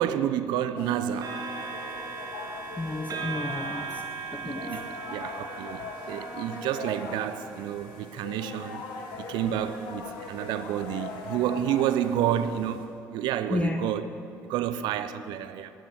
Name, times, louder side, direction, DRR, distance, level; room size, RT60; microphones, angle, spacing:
voice 1, 0.0-1.4 4.4-8.9 9.2-14.1 14.4-15.7, right 10 dB, 70° right, 0.6 m, -30 dB
sound 1, 0.8-12.8, left 3 dB, 75° left, 1.6 m, -41 dB
sound 2, 1.2-8.7 9.4-9.6, right 5 dB, 50° right, 2.0 m, -39 dB
voice 2, 2.8-4.0 4.3-4.9 13.5-13.8, left 2 dB, 20° left, 0.9 m, -31 dB
12.0 x 9.0 x 7.9 m
hypercardioid pair, 55°, 8 cm